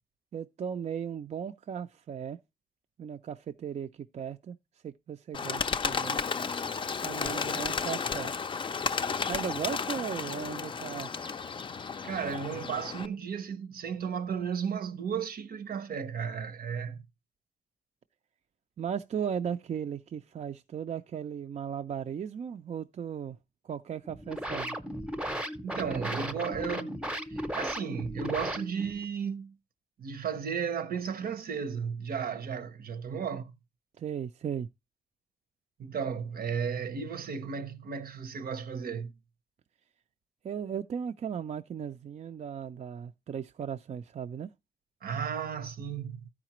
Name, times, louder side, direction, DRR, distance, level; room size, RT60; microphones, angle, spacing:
voice 1, 0.3-2.4 3.0-4.6 4.8-6.2 7.0-8.3 9.3-11.1 18.8-23.4 23.6-24.8 34.0-34.7 40.4-44.5, right 8 dB, 50° right, 0.4 m, -36 dB
Bird, 5.3-13.1, left 5 dB, 35° left, 0.4 m, -33 dB
voice 2, 12.0-17.0 25.6-26.9 27.3-29.6 30.0-33.5 35.8-39.1 45.0-46.3, right 6 dB, 75° right, 0.7 m, -34 dB
sound 1, 24.0-29.0, equal, 5° right, 0.6 m, -36 dB
13.5 x 4.9 x 2.9 m
wide cardioid pair, 120°, 15 cm